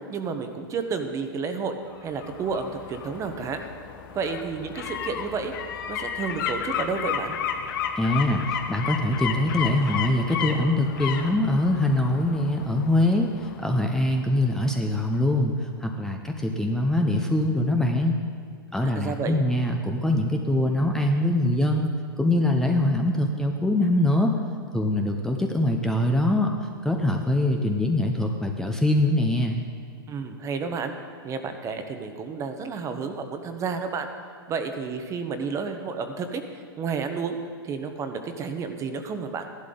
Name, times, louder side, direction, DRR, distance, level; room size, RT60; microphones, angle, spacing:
voice 1, 0.1-1.7 2.0-3.6 4.1-5.5 5.9-7.4 18.9-19.4 30.1-30.9 31.2-34.1 34.5-36.4 36.8-37.4 37.6-39.4, right 5 dB, 25° right, 7 dB, 1.1 m, -31 dB
sound 1, 1.9-14.7 15.1-15.2, left 7 dB, 60° left, 1.2 m, -33 dB
voice 2, 7.9-18.2 18.7-21.9 22.2-24.3 24.7-26.5 26.8-29.6, left 1 dB, 5° left, 2 dB, 0.8 m, -23 dB
15.0 x 11.5 x 3.9 m, 2.3 s
hypercardioid pair, 120°, 12 cm